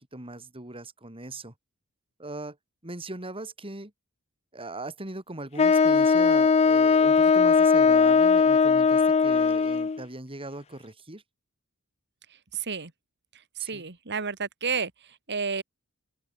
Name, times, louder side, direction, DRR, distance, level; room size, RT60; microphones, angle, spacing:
voice 1, 0.1-1.5 2.2-2.6 2.8-3.9 4.5-11.2 13.6-13.9, right 2 dB, 25° right, 3.6 m, -39 dB
Wind instrument woodwind instrument, 5.6-10.0, left 5 dB, 30° left, 0.4 m, -19 dB
voice 2, 12.3-12.9 13.3-15.6, right 5 dB, 50° right, 2.3 m, -32 dB
open air
head